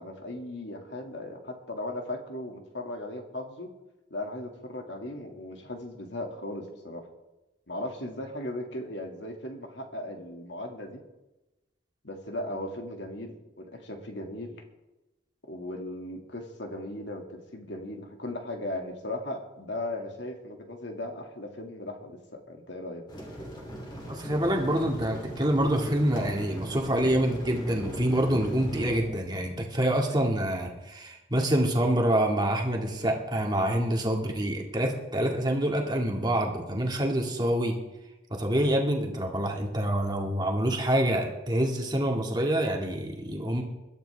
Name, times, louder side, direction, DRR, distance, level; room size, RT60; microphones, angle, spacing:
voice 1, 0.0-3.7 4.1-7.1 7.7-11.0 12.0-14.6 15.5-23.1, left 1 dB, 70° left, 3 dB, 2.2 m, -37 dB
sound 1, 23.1-29.0, equal, 25° left, 3.0 m, -39 dB
voice 2, 24.1-37.8 38.3-43.6, right 1 dB, 20° right, 0 dB, 2.0 m, -26 dB
21.5 x 12.0 x 3.4 m, 1.0 s
head